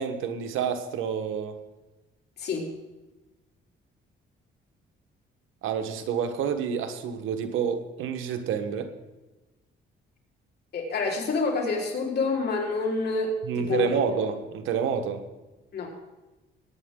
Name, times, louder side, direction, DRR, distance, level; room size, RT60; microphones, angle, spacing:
voice 1, 0.0-1.6 5.6-8.9 13.4-15.2, right 7 dB, 90° right, 8 dB, 1.4 m, -28 dB
voice 2, 2.4-2.7 10.7-13.9 15.7-15.9, left 3 dB, 55° left, -1 dB, 4.2 m, -28 dB
21.0 x 9.6 x 3.8 m, 1.1 s
cardioid pair, 90°, 20 cm